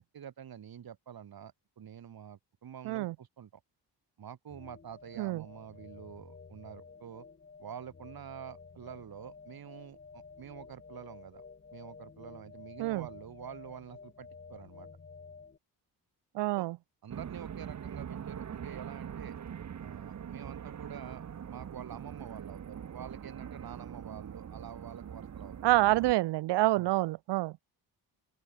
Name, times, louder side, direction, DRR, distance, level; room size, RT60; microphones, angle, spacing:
voice 1, 0.0-3.6 4.2-7.3 7.6-11.4 11.7-14.9 16.5-16.6 17.0-19.3 19.8-21.2 21.5-25.9 26.8-26.9, right 9 dB, 55° right, 6.3 m, -47 dB
sound 1, 4.5-15.6, left 5 dB, 25° left, 1.6 m, -52 dB
voice 2, 16.3-16.8 25.6-27.5, right 18 dB, 75° right, 0.6 m, -27 dB
sound 2, 17.1-26.1, right 8 dB, 40° right, 1.3 m, -43 dB
open air
cardioid pair, 95°, 42 cm